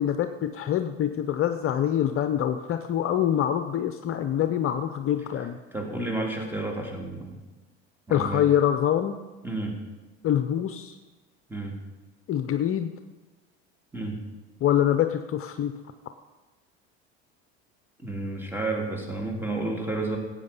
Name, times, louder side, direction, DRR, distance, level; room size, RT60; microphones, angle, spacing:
voice 1, 0.0-5.6 8.1-9.2 10.2-11.0 12.3-12.9 14.6-15.7, left 10 dB, 40° left, 9 dB, 0.8 m, -25 dB
voice 2, 5.7-7.4 8.1-8.4 9.4-9.8 11.5-11.8 13.9-14.2 18.0-20.2, right 2 dB, 5° right, 0 dB, 3.4 m, -31 dB
15.0 x 8.9 x 5.5 m, 1.2 s
hypercardioid pair, 85°, 32 cm